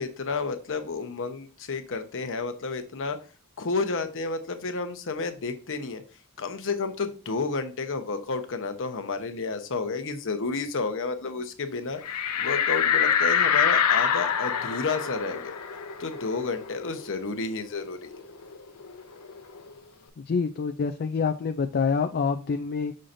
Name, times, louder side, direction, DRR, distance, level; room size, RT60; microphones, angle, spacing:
voice 1, 0.0-3.2 3.6-6.0 6.4-12.0 12.4-15.6 16.0-18.3, left 4 dB, 60° left, 7 dB, 0.9 m, -31 dB
sound 1, 12.0-17.2 17.6-17.7 18.0-19.7, left 7 dB, 90° left, 0.7 m, -26 dB
voice 2, 20.2-22.9, left 5 dB, 45° left, 7 dB, 0.4 m, -26 dB
6.4 x 5.7 x 2.6 m, 0.36 s
head